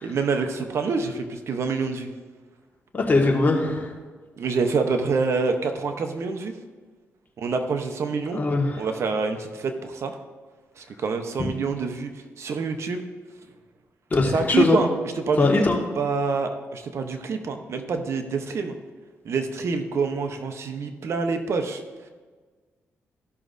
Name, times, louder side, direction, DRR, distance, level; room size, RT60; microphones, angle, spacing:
voice 1, 0.0-2.1 4.4-6.5 7.4-8.4 8.7-10.2 10.8-12.1 12.4-13.0 14.3-14.9 15.3-15.7 16.0-18.7 19.2-21.8, right 4 dB, 65° right, 6 dB, 0.9 m, -26 dB
voice 2, 2.9-3.9 8.3-8.9 11.4-11.5 14.1-14.8 15.4-15.8, left 3 dB, 35° left, 0 dB, 1.7 m, -21 dB
14.5 x 6.1 x 2.7 m, 1.4 s
cardioid pair, 80°, 5 cm